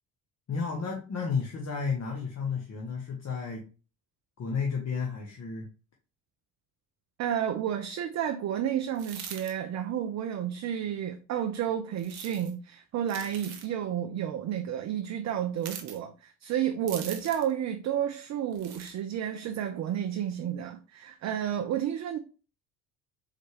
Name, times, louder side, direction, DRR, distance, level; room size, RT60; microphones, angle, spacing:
voice 1, 0.5-3.6 4.4-5.7, left 5 dB, 40° left, 1.1 m, -32 dB
voice 2, 7.2-22.2, right 10 dB, 40° right, 0.5 m, -31 dB
sound 1, 8.9-9.5 12.0-12.5 13.1-13.7 15.6-16.0 16.9-17.5 18.5-18.9, right 8 dB, 80° right, 0.8 m, -42 dB
4.0 x 3.3 x 3.2 m
hypercardioid pair, 50°, 42 cm